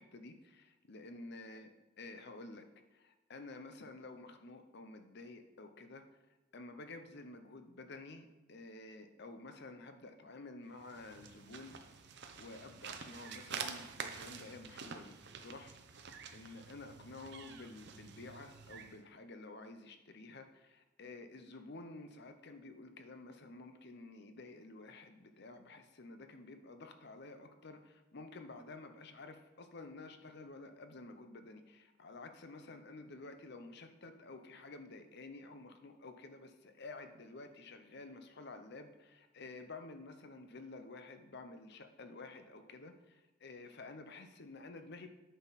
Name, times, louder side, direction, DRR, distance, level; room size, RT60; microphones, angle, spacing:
voice 1, 0.0-1.7 2.0-2.6 2.9-6.0 6.5-11.8 12.4-15.7 16.3-45.1, left 3 dB, 55° left, 7 dB, 0.8 m, -51 dB
sound 1, 10.7-19.0, right 6 dB, 60° right, 0.8 m, -48 dB
9.2 x 6.3 x 4.2 m, 1.2 s
head